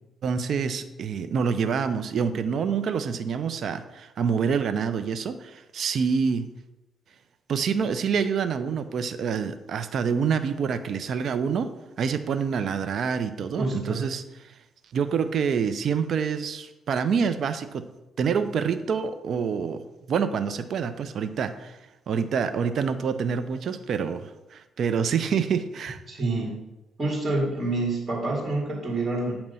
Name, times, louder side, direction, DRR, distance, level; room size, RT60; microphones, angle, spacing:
voice 1, 0.2-6.5 7.5-11.7 12.0-14.5 14.9-17.8 18.2-19.8 20.1-21.8 22.1-26.0, right 6 dB, 60° right, 10 dB, 0.5 m, -27 dB
voice 2, 13.6-14.1 26.1-26.6 27.0-29.4, right 2 dB, 30° right, -3 dB, 2.0 m, -27 dB
8.6 x 2.9 x 5.4 m, 0.98 s
cardioid pair, 90°, 0 cm